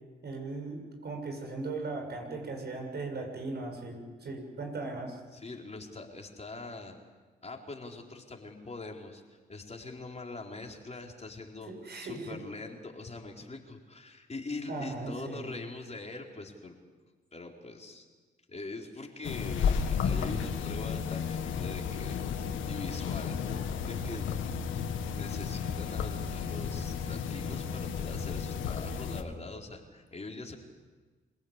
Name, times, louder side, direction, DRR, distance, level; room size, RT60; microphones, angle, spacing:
voice 1, 0.2-5.2 11.7-12.4 14.7-15.5, right 3 dB, 55° right, 3 dB, 7.2 m, -38 dB
voice 2, 5.3-7.0 7.4-9.2 9.5-16.8 17.3-18.0 18.5-24.3 25.1-30.6, left 3 dB, 35° left, 1 dB, 4.4 m, -43 dB
sound 1, 19.2-29.2, left 6 dB, 80° left, 1.8 m, -33 dB
26.0 x 17.5 x 8.3 m, 1.3 s
supercardioid pair, 50°, 20 cm